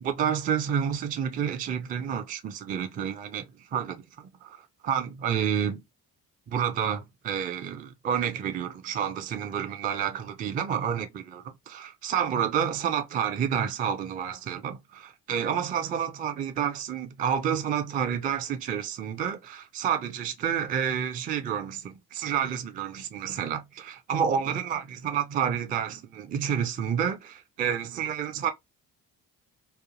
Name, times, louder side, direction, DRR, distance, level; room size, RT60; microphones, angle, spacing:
voice 1, 0.0-5.8 6.5-28.5, right 8 dB, 20° right, 0.3 m, -29 dB
2.5 x 2.3 x 3.0 m
figure-of-eight pair, 45°, 50 cm